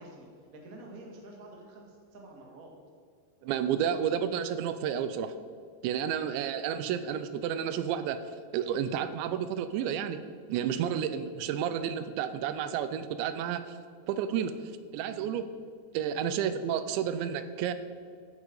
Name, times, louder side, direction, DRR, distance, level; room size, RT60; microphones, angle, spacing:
voice 1, 0.0-2.7 3.9-4.0 10.7-10.9 15.0-15.2 16.0-16.2 16.7-16.9, right 1 dB, 45° right, 0 dB, 1.1 m, -48 dB
voice 2, 3.4-5.3 5.8-8.2 8.5-10.2 10.5-13.6 14.1-14.5 14.9-15.5 15.9-17.7, right 9 dB, 90° right, 11 dB, 2.9 m, -31 dB
13.5 x 8.2 x 5.5 m, 2.2 s
omnidirectional pair, 5.2 m